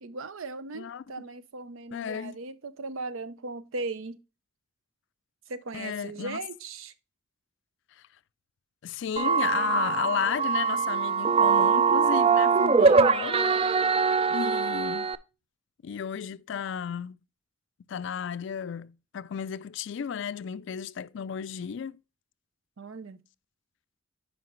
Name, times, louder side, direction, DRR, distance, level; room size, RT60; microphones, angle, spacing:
voice 1, 0.0-4.2 5.5-6.9 22.8-23.2, right 3 dB, 80° right, 0.6 m, -38 dB
voice 2, 0.7-1.3 1.9-2.4 5.7-6.4 8.0-8.1 8.8-13.6 14.3-15.1 15.8-17.2 17.9-22.0, left 7 dB, 60° left, 0.3 m, -33 dB
sound 1, 9.2-15.2, right 5 dB, 30° right, 0.3 m, -23 dB
9.5 x 5.2 x 3.0 m
head